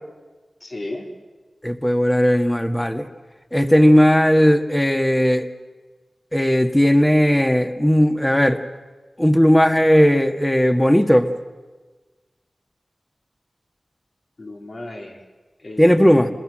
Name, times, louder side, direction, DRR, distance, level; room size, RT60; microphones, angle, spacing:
voice 1, 0.6-1.1 14.4-15.2 15.6-16.3, left 2 dB, 60° left, 1 dB, 4.3 m, -34 dB
voice 2, 1.6-3.1 3.5-5.5 6.3-8.6 9.2-11.3 15.8-16.3, equal, 15° left, 7 dB, 1.8 m, -16 dB
28.0 x 21.0 x 7.6 m, 1.3 s
cardioid pair, 45°, 0 cm